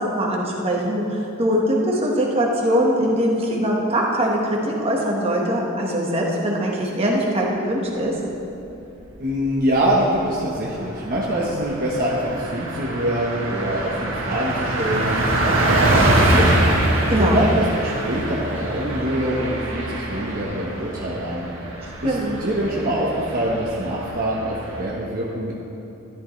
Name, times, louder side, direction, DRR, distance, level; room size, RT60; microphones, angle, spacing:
voice 1, 0.0-8.1 17.1-17.4 22.0-22.4, equal, 30° right, -3 dB, 1.5 m, -22 dB
voice 2, 9.2-15.8 16.0-16.6 17.2-21.5 22.0-25.5, right 1 dB, 45° right, -4 dB, 1.2 m, -24 dB
Car passing by, 9.2-9.8 10.1-10.3 10.6-24.8, right 1 dB, 70° right, 2.0 m, -24 dB
14.0 x 11.0 x 3.3 m, 2.9 s
head